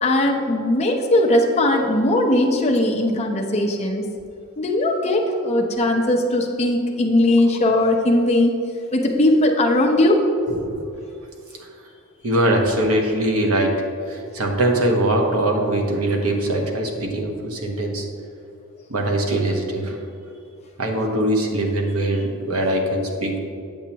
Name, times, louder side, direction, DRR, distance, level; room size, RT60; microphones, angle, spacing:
voice 1, 0.0-4.1 4.6-8.5 8.9-10.2, left 1 dB, 30° left, 0 dB, 0.8 m, -19 dB
voice 2, 10.6-10.9 12.2-13.7 14.1-18.1 18.9-20.0 20.8-23.4, right 1 dB, 75° right, 1 dB, 1.1 m, -22 dB
8.7 x 7.3 x 2.9 m, 2.5 s
head